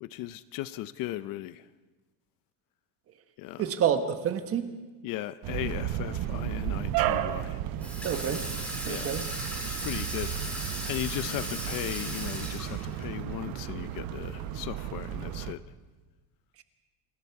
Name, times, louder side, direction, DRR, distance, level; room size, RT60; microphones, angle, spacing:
voice 1, 0.0-1.7 3.4-3.6 5.0-7.6 8.9-9.2 9.7-15.6, left 15 dB, 50° left, 0.6 m, -37 dB
voice 2, 3.6-4.7 8.0-8.4 8.8-9.3, right 8 dB, 35° right, 1.2 m, -28 dB
sound 1, 5.4-15.5, right 11 dB, 55° right, 1.0 m, -34 dB
Water tap faucet / Sink (filling or washing), 7.8-13.0, right 1 dB, 5° left, 7.1 m, -37 dB
28.0 x 21.0 x 4.7 m
cardioid pair, 180°, 43 cm